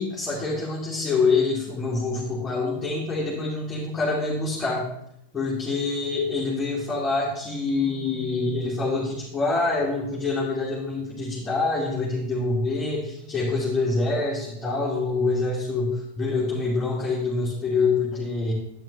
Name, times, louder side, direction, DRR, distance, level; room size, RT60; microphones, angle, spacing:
voice 1, 0.0-4.8 5.3-18.5, left 3 dB, 15° left, -6 dB, 2.5 m, -26 dB
10.5 x 8.7 x 3.3 m, 0.77 s
figure-of-eight pair, 90°, 0 cm